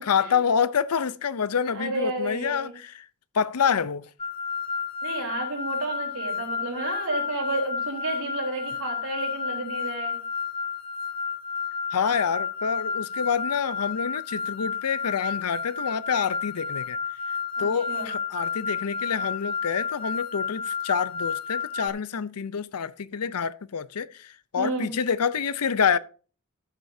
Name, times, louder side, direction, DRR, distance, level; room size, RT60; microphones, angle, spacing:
voice 1, 0.0-3.1 3.3-4.1 11.9-17.0 17.6-26.0, left 6 dB, 90° left, 0.6 m, -27 dB
voice 2, 1.7-2.7 5.0-10.2 17.6-18.1 24.6-24.9, right 2 dB, 65° right, 4.0 m, -31 dB
sound 1, 4.2-21.9, left 6 dB, 25° left, 0.6 m, -31 dB
14.0 x 7.9 x 2.7 m
head